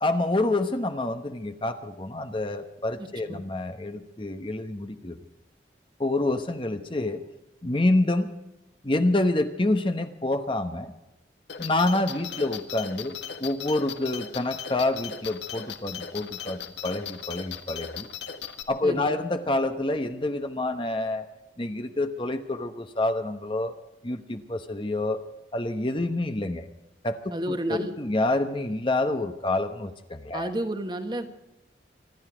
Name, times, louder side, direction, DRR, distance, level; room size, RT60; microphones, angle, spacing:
voice 1, 0.0-5.2 6.0-7.2 7.6-8.3 8.8-10.9 11.6-18.1 18.7-21.3 21.6-23.7 24.0-25.2 25.5-26.7 27.0-27.2 27.5-30.5, left 2 dB, 30° left, 8 dB, 0.9 m, -27 dB
sound 1, 11.5-18.6, left 8 dB, 75° left, 1.6 m, -37 dB
voice 2, 18.8-19.2 27.3-27.9 30.3-31.3, right 1 dB, 25° right, 7 dB, 1.4 m, -30 dB
26.0 x 11.5 x 4.9 m, 0.93 s
head